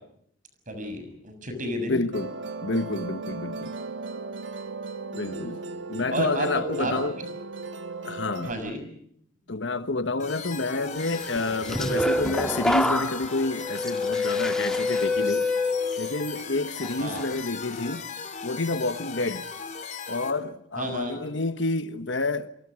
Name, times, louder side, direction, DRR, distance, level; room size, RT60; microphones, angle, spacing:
voice 1, 0.7-2.0 6.1-7.3 8.4-8.8 17.0-17.2 20.8-21.2, right 1 dB, 45° right, 6.8 m, -31 dB
voice 2, 1.9-2.3 2.6-3.8 5.1-5.6 5.9-7.2 8.0-8.5 9.5-15.5 16.0-18.1 18.4-19.5 20.1-22.5, left 2 dB, 65° left, 1.4 m, -29 dB
Musical instrument, 2.1-8.5, right 3 dB, 70° right, 1.7 m, -36 dB
sound 1, 10.2-20.3, left 5 dB, 40° left, 3.1 m, -38 dB
sound 2, 11.3-16.4 16.8-17.2, left 2 dB, 5° left, 1.9 m, -27 dB
28.0 x 24.5 x 6.4 m
head